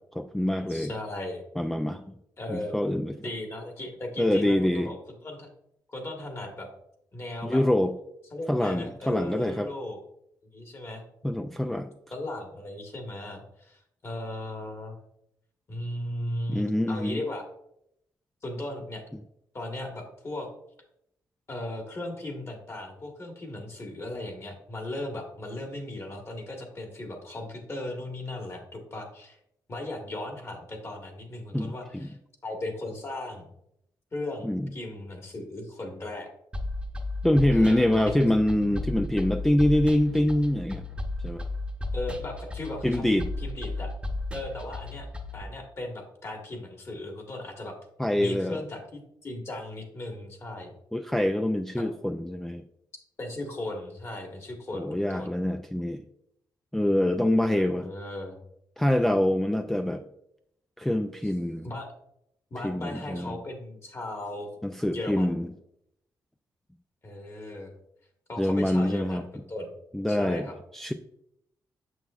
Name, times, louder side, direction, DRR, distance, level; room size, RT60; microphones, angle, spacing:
voice 1, 0.2-0.9 1.6-2.0 2.5-3.1 4.2-4.9 7.4-7.9 8.5-9.7 11.2-11.9 16.5-17.2 31.5-32.1 34.4-34.7 37.2-40.8 41.2-41.4 42.8-43.3 48.0-48.6 50.9-52.6 54.7-56.0 56.7-57.9 58.8-60.1 60.8-61.7 62.6-63.4 64.6-65.5 68.4-69.2 69.9-70.5 70.7-70.9, left 1 dB, 5° left, 5 dB, 0.3 m, -25 dB
voice 2, 0.7-1.4 2.4-2.7 3.2-5.5 5.9-6.7 7.1-7.6 8.3-10.0 10.5-11.0 12.1-15.0 15.7-17.4 18.4-19.0 19.5-20.5 21.5-29.4 29.7-32.2 32.4-33.5 34.1-36.3 37.5-38.3 41.9-43.9 44.3-45.1 45.3-47.7 48.2-50.7 51.8-51.9 53.2-55.3 57.5-58.4 61.6-61.9 62.5-64.5 64.8-65.3 67.0-67.7 68.3-69.7 70.1-70.5, left 1 dB, 35° left, 2 dB, 1.4 m, -37 dB
sound 1, 36.5-45.4, left 2 dB, 15° right, 0.9 m, -34 dB
6.9 x 6.0 x 2.4 m, 0.76 s
cardioid pair, 90°, 8 cm